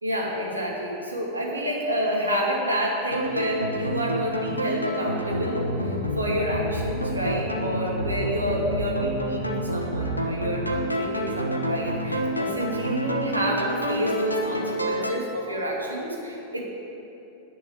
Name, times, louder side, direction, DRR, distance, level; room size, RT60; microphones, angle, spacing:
voice 1, 0.0-16.6, equal, 80° right, -2 dB, 2.7 m, -29 dB
sound 1, 3.1-15.1, equal, 85° left, 1.1 m, -28 dB
10.5 x 8.4 x 10.0 m, 3.0 s
figure-of-eight pair, 90°, 0 cm